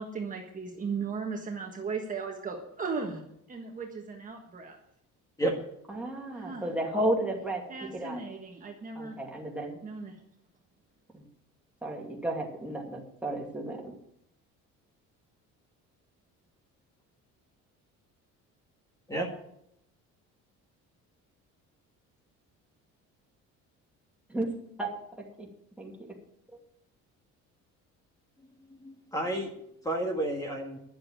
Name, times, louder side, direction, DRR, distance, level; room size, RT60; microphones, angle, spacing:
voice 1, 0.0-3.2 3.5-4.8 6.3-6.7 7.7-9.2 9.8-10.2, right 5 dB, 25° right, 1 dB, 1.5 m, -36 dB
voice 2, 5.9-7.6 7.9-8.2 8.9-9.8 11.1-11.3 11.8-13.8 24.3-24.5 24.8-25.5 25.8-25.9, right 1 dB, 5° right, -2 dB, 2.5 m, -33 dB
voice 3, 28.6-29.5 29.8-30.8, right 1 dB, 10° left, 1 dB, 1.7 m, -31 dB
11.0 x 7.8 x 8.8 m, 0.76 s
cardioid pair, 160°, 30 cm